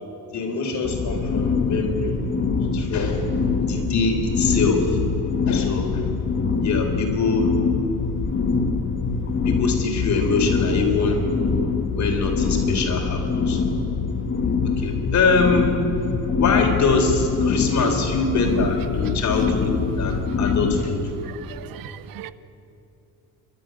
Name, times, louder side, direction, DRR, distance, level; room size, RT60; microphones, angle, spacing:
voice 1, 0.3-2.2 2.7-3.3 3.7-4.9 5.5-6.1 6.6-7.6 9.5-11.3 11.9-13.6 14.6-15.7 16.4-21.1, left 4 dB, 45° left, 3 dB, 3.9 m, -23 dB
sound 1, 0.8-20.8, left 5 dB, 30° left, 1.5 m, -24 dB
voice 2, 21.6-22.3, right 12 dB, 60° right, 15 dB, 0.8 m, -38 dB
28.5 x 12.5 x 9.5 m, 2.8 s
cardioid pair, 155°, 38 cm